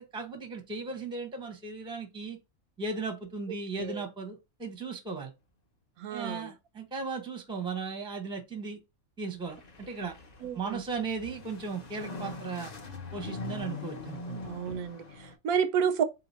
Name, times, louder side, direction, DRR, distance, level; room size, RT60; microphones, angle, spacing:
voice 1, 0.0-2.4 2.8-5.3 6.1-8.8 9.2-10.1 10.5-12.7 13.1-14.5, right 4 dB, 5° right, 0.6 m, -37 dB
voice 2, 6.0-6.5 10.0-10.1 10.4-10.8 14.4-16.0, right 7 dB, 85° right, 1.1 m, -30 dB
sound 1, 9.4-15.3, left 3 dB, 45° left, 0.5 m, -42 dB
3.8 x 2.8 x 4.0 m
omnidirectional pair, 1.5 m